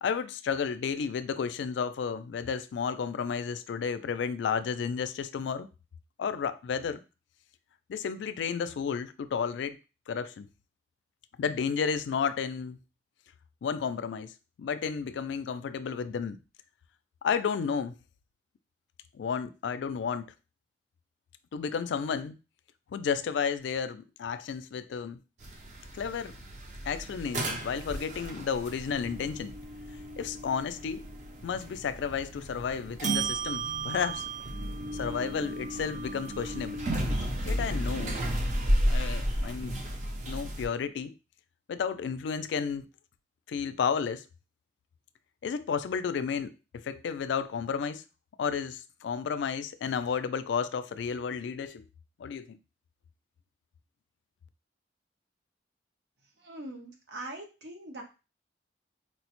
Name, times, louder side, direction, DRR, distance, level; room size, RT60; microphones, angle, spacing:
voice 1, 0.0-5.7 6.2-7.0 7.9-9.8 10.1-10.5 11.4-12.8 13.6-16.4 17.2-17.9 19.1-20.3 21.5-22.4 22.9-25.2 25.9-26.4 26.8-29.5 30.2-31.1 31.4-34.3 34.9-36.8 37.4-38.2 38.9-39.8 40.3-41.1 41.7-42.9 43.5-44.2 45.4-48.0 48.4-51.8 52.2-52.6, left 6 dB, 85° left, 0.3 m, -32 dB
sound 1, 25.4-40.7, right 1 dB, 40° right, 0.5 m, -33 dB
voice 2, 56.4-58.0, right 1 dB, 80° right, 0.9 m, -42 dB
4.3 x 2.1 x 2.9 m
head